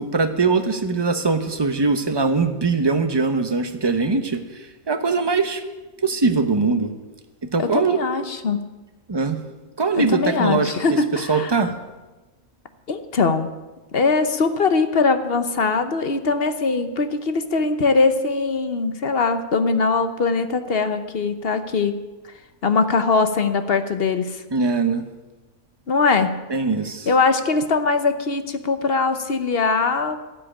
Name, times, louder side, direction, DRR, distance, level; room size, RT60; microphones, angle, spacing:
voice 1, 0.0-5.6 6.0-6.9 7.4-8.0 9.1-9.4 9.8-11.8 24.5-25.1 26.5-27.1, right 4 dB, 20° right, 8 dB, 0.8 m, -22 dB
voice 2, 7.6-8.6 9.9-11.6 12.9-13.5 13.9-22.0 22.6-24.4 25.9-26.3 27.1-30.2, left 4 dB, 45° left, 9 dB, 1.0 m, -21 dB
12.5 x 7.6 x 10.0 m, 1.2 s
omnidirectional pair, 1.5 m